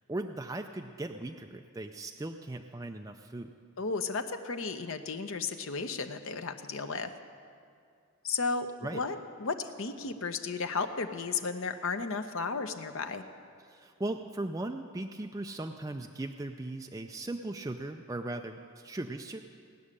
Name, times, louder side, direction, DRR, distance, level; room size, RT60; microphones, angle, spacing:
voice 1, 0.1-3.5 8.8-9.0 13.6-19.4, right 2 dB, 15° right, 5 dB, 0.4 m, -38 dB
voice 2, 3.8-7.1 8.2-8.7 8.9-13.2, left 4 dB, 65° left, 7 dB, 0.8 m, -34 dB
17.5 x 6.3 x 9.8 m, 2.4 s
head